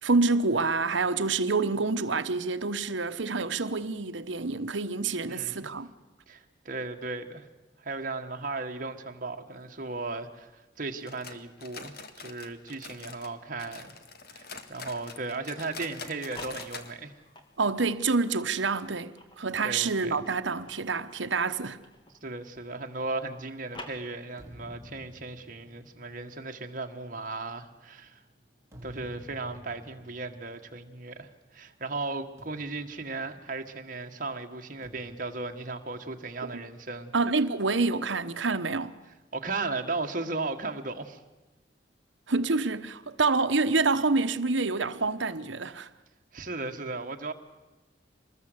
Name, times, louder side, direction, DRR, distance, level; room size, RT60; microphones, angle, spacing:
voice 1, 0.0-5.9 17.6-21.8 36.4-36.6 37.1-38.9 42.3-45.9, right 3 dB, 75° right, 1.1 m, -27 dB
voice 2, 5.3-5.7 6.3-7.5 7.8-13.9 14.3-17.2 19.6-20.2 22.2-28.2 28.8-37.1 39.3-41.2 46.3-47.3, right 3 dB, 45° right, 1.8 m, -36 dB
sound 1, 11.1-13.3 13.6-16.9 17.2-17.3 17.7-17.8 18.3-18.4, left 5 dB, 55° left, 1.9 m, -44 dB
sound 2, 16.1-18.0 18.6-22.4 22.6-24.6, left 1 dB, 25° left, 2.7 m, -50 dB
sound 3, 20.0-23.6 24.1-31.6 31.8-32.0 32.4-34.0 34.8-36.6, equal, 15° right, 3.6 m, -53 dB
25.0 x 20.5 x 8.1 m
head